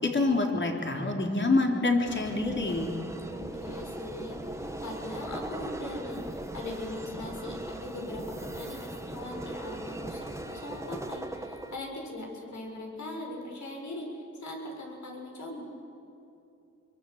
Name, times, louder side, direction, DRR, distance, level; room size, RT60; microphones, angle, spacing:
voice 1, 0.0-2.9, left 2 dB, 40° left, 1 dB, 3.8 m, -26 dB
sound 1, 2.1-11.8, right 1 dB, 10° right, 1.8 m, -39 dB
voice 2, 3.3-4.4 4.8-14.0 14.4-15.6, left 2 dB, 70° left, 0 dB, 6.7 m, -40 dB
26.5 x 23.0 x 8.2 m, 2.8 s
wide cardioid pair, 85°, 30 cm